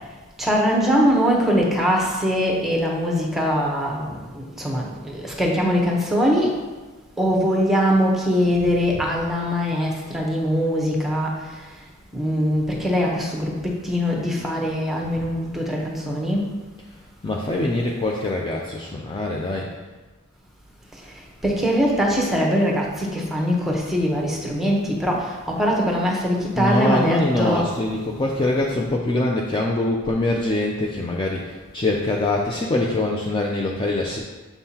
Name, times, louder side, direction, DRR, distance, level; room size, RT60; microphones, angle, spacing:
voice 1, 0.4-4.1 4.6-6.5 7.2-11.3 12.1-13.5 13.8-16.4 21.4-27.6, equal, ahead, -2 dB, 0.9 m, -22 dB
voice 2, 17.2-19.7 26.6-34.2, left 2 dB, 20° left, -1 dB, 0.4 m, -23 dB
7.0 x 5.6 x 2.8 m, 1.2 s
head